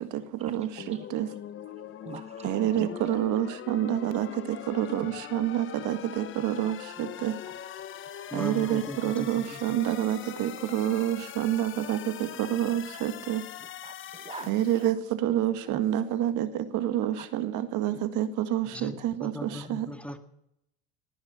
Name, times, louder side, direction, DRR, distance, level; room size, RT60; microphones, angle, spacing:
voice 1, 0.0-1.3 2.4-7.4 8.3-13.5 14.5-19.9, right 12 dB, 60° right, 10 dB, 1.8 m, -28 dB
sound 1, 0.8-14.9, left 10 dB, 35° left, 0.9 m, -42 dB
voice 2, 2.0-3.0 4.3-4.4 5.9-6.0 6.6-6.7 7.4-7.5 8.3-8.7 9.8-9.9 11.9-12.0 13.0-13.1 13.8-14.6 15.7-15.8 17.2-17.3 17.9-18.0, right 5 dB, 20° right, 10 dB, 0.8 m, -44 dB
voice 3, 8.3-9.8 18.7-20.2, left 1 dB, 5° left, 7 dB, 1.9 m, -38 dB
19.0 x 9.7 x 6.9 m, 0.79 s
supercardioid pair, 105°, 33 cm